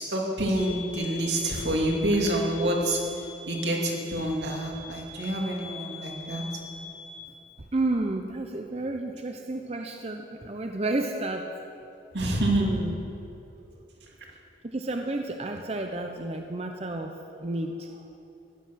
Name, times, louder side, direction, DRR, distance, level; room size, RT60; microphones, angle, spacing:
voice 1, 0.0-3.0 3.5-6.4 12.1-12.7, right 1 dB, 85° right, -1 dB, 2.7 m, -27 dB
sound 1, 0.5-7.3, left 4 dB, 65° left, 1.6 m, -43 dB
voice 2, 7.7-11.5 12.6-13.0 14.6-18.2, right 2 dB, 35° right, 4 dB, 0.7 m, -31 dB
15.0 x 11.5 x 6.3 m, 2.8 s
head